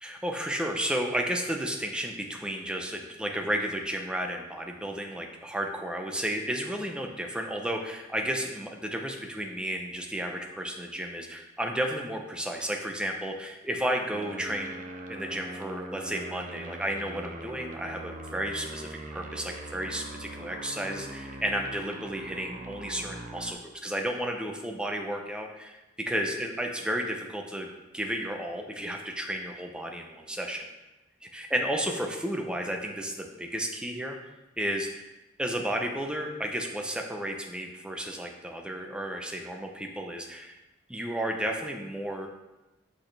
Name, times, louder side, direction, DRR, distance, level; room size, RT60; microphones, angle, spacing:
voice 1, 0.0-14.7 15.1-27.7 27.9-30.6 31.3-34.2 34.6-35.0 35.4-40.5 40.9-42.3, equal, 5° right, 2 dB, 0.6 m, -32 dB
sound 1, 14.1-23.5, right 2 dB, 45° right, 0.6 m, -41 dB
6.2 x 6.1 x 3.3 m, 1.0 s
head